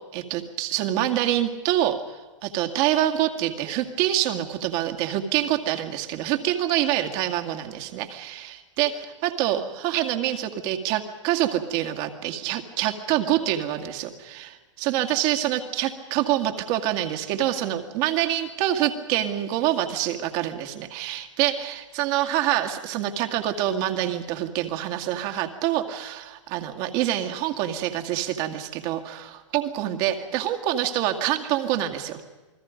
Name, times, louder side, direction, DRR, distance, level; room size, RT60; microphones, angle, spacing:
voice 1, 0.1-2.2 2.4-32.2, right 12 dB, 45° right, 5 dB, 2.3 m, -26 dB
28.5 x 21.0 x 5.2 m, 1.2 s
hypercardioid pair, 115°, 16 cm